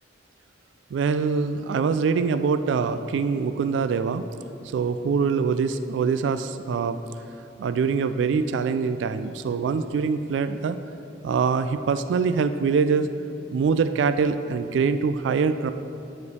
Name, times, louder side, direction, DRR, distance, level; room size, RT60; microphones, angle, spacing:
voice 1, 0.9-4.3 4.7-7.0 7.6-10.8 11.2-13.1 13.5-15.7, right 5 dB, 75° right, 11 dB, 0.3 m, -24 dB
9.6 x 5.0 x 4.8 m, 2.8 s
head